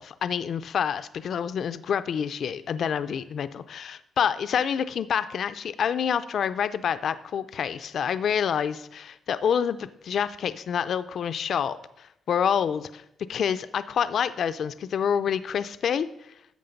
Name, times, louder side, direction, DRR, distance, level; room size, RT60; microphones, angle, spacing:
voice 1, 0.0-13.0 13.3-16.3, left 8 dB, 50° left, 13 dB, 0.4 m, -27 dB
11.5 x 7.4 x 5.2 m, 0.81 s
cardioid pair, 165°, 0 cm